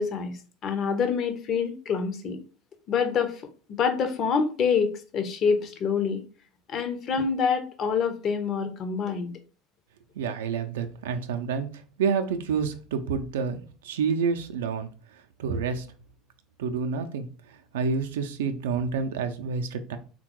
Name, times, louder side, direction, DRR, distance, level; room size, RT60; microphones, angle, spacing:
voice 1, 0.0-2.4 2.9-3.4 3.7-6.2 6.7-9.3, left 6 dB, 45° left, 8 dB, 0.6 m, -26 dB
voice 2, 10.2-14.9 15.4-15.9 16.6-17.3 17.7-20.0, right 5 dB, 70° right, 7 dB, 0.3 m, -28 dB
3.6 x 2.2 x 2.8 m, 0.37 s
figure-of-eight pair, 70°, 0 cm